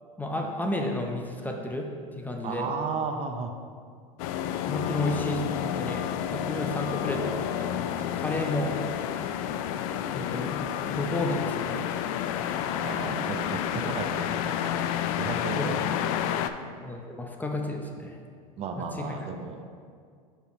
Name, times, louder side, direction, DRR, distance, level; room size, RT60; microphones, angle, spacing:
voice 1, 0.2-1.9 2.1-2.7 4.7-8.7 10.1-10.6 10.9-11.9 15.6-15.7 16.8-18.2 18.8-18.9, left 2 dB, 10° left, 2 dB, 0.7 m, -32 dB
voice 2, 2.4-3.5 12.7-16.4 18.6-19.6, right 4 dB, 30° right, 4 dB, 0.6 m, -34 dB
sound 1, 4.2-16.5, left 10 dB, 65° left, 0.4 m, -30 dB
5.4 x 4.4 x 4.7 m, 2.1 s
hypercardioid pair, 95°, 19 cm